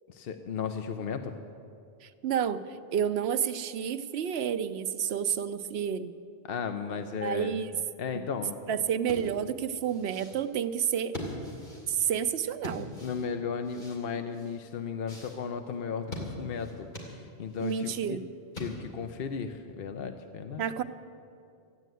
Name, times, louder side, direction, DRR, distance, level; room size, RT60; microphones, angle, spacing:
voice 1, 0.1-1.4 6.4-7.6 8.0-8.6 13.0-18.2 18.6-20.6, left 6 dB, 70° left, 7 dB, 0.9 m, -35 dB
voice 2, 2.0-2.6 2.9-6.1 7.2-7.7 8.7-11.1 11.9-12.9 17.6-18.3 20.6-20.8, right 8 dB, 85° right, 10 dB, 0.9 m, -30 dB
sound 1, 9.0-19.1, left 1 dB, 50° left, 2.9 m, -43 dB
14.5 x 9.2 x 9.1 m, 2.5 s
omnidirectional pair, 1.0 m